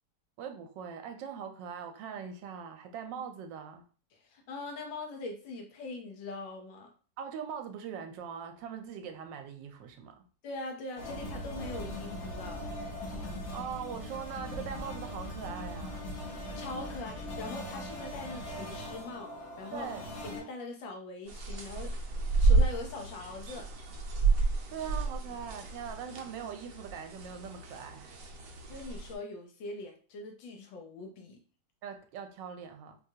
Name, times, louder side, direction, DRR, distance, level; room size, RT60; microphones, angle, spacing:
voice 1, 0.4-3.8 7.2-10.2 13.5-16.1 19.7-20.1 24.7-28.2 31.8-33.0, right 7 dB, 80° right, 1.2 m, -41 dB
voice 2, 4.1-6.9 10.4-12.9 16.3-19.9 20.2-21.9 22.4-23.7 28.7-31.4, left 2 dB, 90° left, 1.4 m, -42 dB
sound 1, 11.0-20.4, left 1 dB, 60° left, 1.3 m, -40 dB
sound 2, 21.3-29.1, right 3 dB, 65° right, 0.9 m, -31 dB
4.6 x 2.2 x 2.7 m
omnidirectional pair, 2.0 m